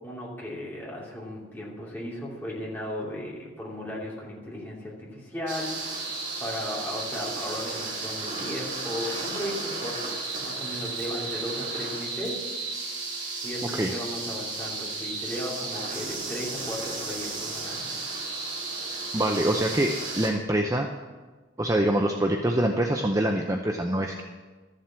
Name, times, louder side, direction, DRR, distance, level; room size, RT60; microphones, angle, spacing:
voice 1, 0.0-12.4 13.4-17.9, left 1 dB, 10° left, -5 dB, 2.8 m, -36 dB
sound 1, 5.5-20.3, right 3 dB, 40° right, 2.8 m, -34 dB
voice 2, 19.1-20.9 21.6-24.2, right 1 dB, 15° right, 3 dB, 0.6 m, -25 dB
12.5 x 7.5 x 7.3 m, 1.3 s
head